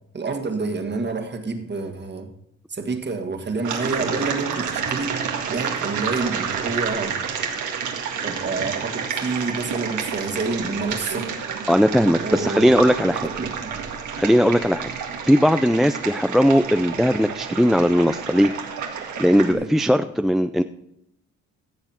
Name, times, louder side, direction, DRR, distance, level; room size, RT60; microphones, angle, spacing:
voice 1, 0.1-2.3 2.7-5.2 5.5-7.2 8.2-11.4 12.2-12.7 13.1-13.8 19.4-19.8, right 3 dB, 35° right, 6 dB, 1.7 m, -28 dB
sound 1, 3.6-19.5, right 6 dB, 75° right, 1.9 m, -29 dB
voice 2, 11.7-13.3 14.2-14.9 15.3-18.5 18.9-20.6, equal, ahead, 9 dB, 0.4 m, -18 dB
16.0 x 7.1 x 4.4 m, 0.82 s
cardioid pair, 90°, 30 cm